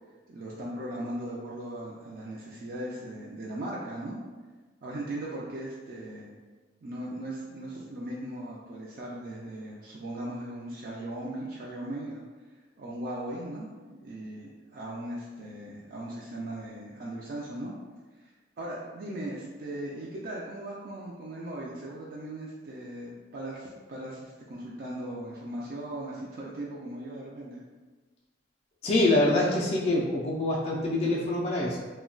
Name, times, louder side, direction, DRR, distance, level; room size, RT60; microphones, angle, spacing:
voice 1, 0.3-4.2 4.8-6.3 6.8-12.2 12.8-17.7 18.6-27.6, right 1 dB, 50° right, -5 dB, 0.4 m, -38 dB
voice 2, 28.8-31.8, left 2 dB, 35° left, -4 dB, 0.3 m, -25 dB
2.2 x 2.1 x 3.7 m, 1.3 s
head